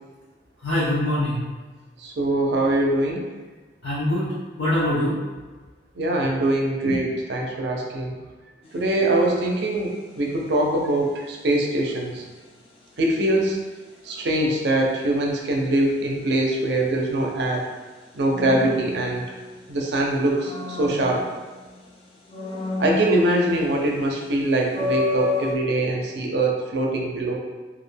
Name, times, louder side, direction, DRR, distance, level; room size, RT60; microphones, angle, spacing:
voice 1, 0.6-1.5 3.8-5.2, left 1 dB, 85° left, -8 dB, 0.6 m, -23 dB
voice 2, 2.0-3.2 6.0-8.1 8.7-12.2 13.0-13.6 14.0-17.7 18.1-19.2 19.7-21.2 22.8-27.4, right 1 dB, 75° right, 0 dB, 0.5 m, -23 dB
sound 1, 8.6-9.0 18.3-19.7 20.1-21.8 22.3-23.9 24.2-24.3 24.7-25.6, left 3 dB, 30° left, 0.3 m, -30 dB
2.4 x 2.1 x 3.2 m, 1.3 s
head